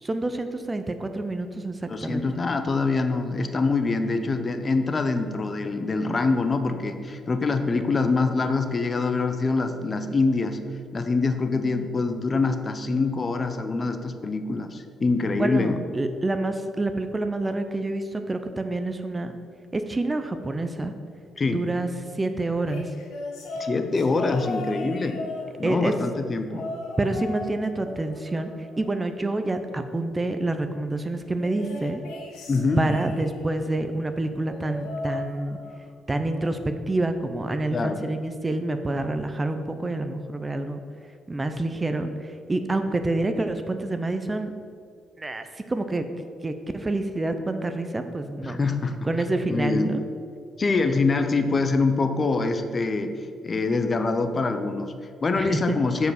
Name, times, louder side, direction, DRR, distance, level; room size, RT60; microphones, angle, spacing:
voice 1, 0.0-2.2 15.3-19.3 19.7-20.9 21.5-21.9 22.1-22.9 25.6-25.9 27.0-28.5 28.8-32.0 32.8-35.6 36.1-36.6 36.9-40.8 41.3-44.5 45.2-46.0 46.4-48.6 49.0-50.0 55.4-55.6, right 2 dB, 20° right, 8 dB, 0.6 m, -27 dB
voice 2, 1.9-10.6 10.9-15.8 21.4-21.7 23.6-25.2 25.6-26.7 32.5-32.9 37.7-38.1 48.4-49.1 49.5-49.9 50.6-56.1, left 3 dB, 35° left, 8 dB, 0.7 m, -25 dB
sound 1, 22.6-25.9 26.5-27.5 27.8-29.3 31.4-33.5 34.4-35.9 36.2-36.6 37.7-37.8, left 2 dB, 85° left, 1.4 m, -37 dB
7.6 x 4.8 x 6.4 m, 2.1 s
cardioid pair, 90°, 0 cm